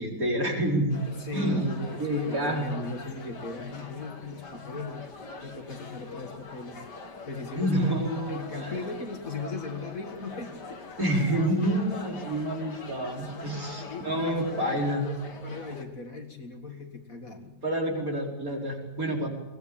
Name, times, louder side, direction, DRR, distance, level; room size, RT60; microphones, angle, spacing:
voice 1, 0.0-1.0 1.3-1.7 2.0-2.7 7.6-8.8 11.0-15.0 17.6-19.3, right 1 dB, 50° right, 1 dB, 5.4 m, -28 dB
sound 1, 0.9-15.8, left 3 dB, 70° left, 3.0 m, -43 dB
voice 2, 1.1-6.8 7.3-10.8 13.7-17.6, left 4 dB, 50° left, 6 dB, 2.6 m, -38 dB
23.0 x 20.0 x 8.8 m, 1.1 s
omnidirectional pair, 1.9 m